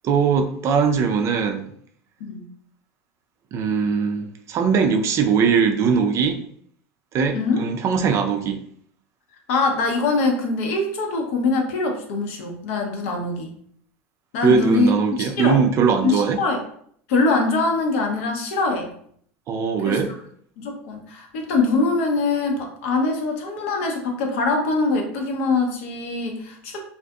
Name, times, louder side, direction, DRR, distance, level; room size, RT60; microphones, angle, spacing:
voice 1, 0.0-1.7 3.5-6.4 7.1-8.6 14.4-16.4 19.5-20.1, right 5 dB, 40° right, 0.4 m, -20 dB
voice 2, 9.5-13.6 14.3-15.6 16.0-16.6 17.1-18.9 19.8-20.0 20.6-26.8, left 3 dB, 70° left, 0.7 m, -23 dB
2.5 x 2.4 x 2.3 m
hypercardioid pair, 95°, 7 cm